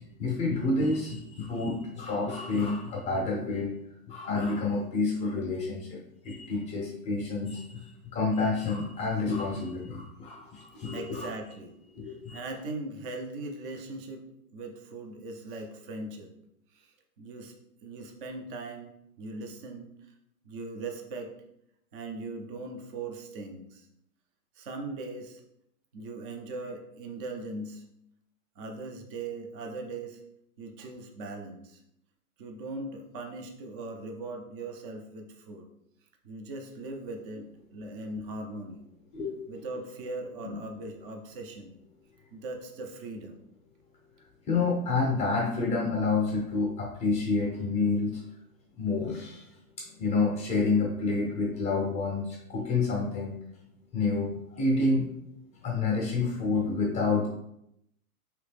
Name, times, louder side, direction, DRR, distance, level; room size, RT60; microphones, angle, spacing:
voice 1, 0.2-3.8 4.1-11.3 11.9-12.4 39.1-39.3 44.5-48.2 48.8-49.5 49.8-53.3 53.9-55.1 55.6-57.3, left 3 dB, 15° left, -2 dB, 0.6 m, -29 dB
voice 2, 10.9-14.2 14.5-16.3 16.7-17.5 17.8-18.9 19.2-20.1 20.4-21.3 21.9-23.9 24.6-25.4 25.9-27.8 28.6-30.2 30.6-31.8 32.4-35.7 36.2-38.9 39.5-41.8 42.3-43.4, right 2 dB, 35° right, 3 dB, 0.6 m, -40 dB
3.1 x 3.0 x 3.4 m, 0.77 s
hypercardioid pair, 130°, 45 cm